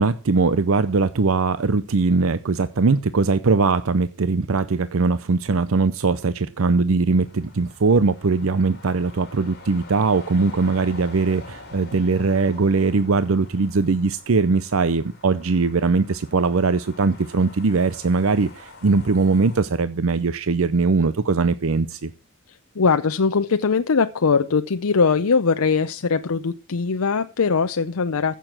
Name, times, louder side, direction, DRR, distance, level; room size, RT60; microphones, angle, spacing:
voice 1, 0.0-22.1, right 4 dB, 65° right, 14 dB, 0.6 m, -20 dB
sound 1, 7.2-19.6, left 2 dB, 50° left, 3.6 m, -45 dB
voice 2, 22.5-28.4, left 5 dB, 75° left, 9 dB, 0.6 m, -21 dB
15.0 x 7.0 x 5.9 m, 0.32 s
head